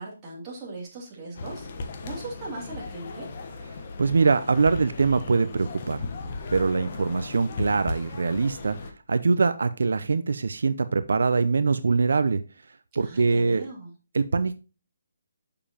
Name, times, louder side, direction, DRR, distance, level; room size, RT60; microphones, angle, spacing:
voice 1, 0.0-3.3 13.0-13.9, right 2 dB, 20° right, -4 dB, 2.6 m, -39 dB
sound 1, 1.3-8.9, left 3 dB, 35° left, 1.1 m, -36 dB
voice 2, 4.0-6.0 6.5-8.8 9.1-12.4 13.0-13.6 14.1-14.6, right 4 dB, 75° right, 12 dB, 0.6 m, -23 dB
7.1 x 6.7 x 2.9 m, 0.32 s
hypercardioid pair, 170°, 0 cm